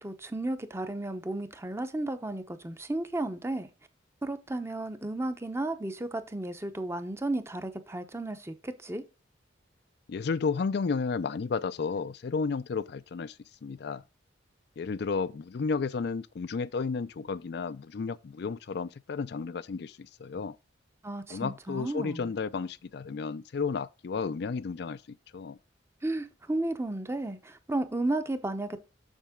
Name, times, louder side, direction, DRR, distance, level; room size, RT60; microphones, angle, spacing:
voice 1, 0.0-3.7 4.2-9.0 21.0-22.3 26.0-28.8, right 2 dB, 15° right, 0.7 m, -33 dB
voice 2, 10.1-13.4 13.6-14.0 14.8-20.6 21.3-25.6, left 5 dB, 60° left, 0.4 m, -32 dB
7.2 x 6.6 x 3.6 m
head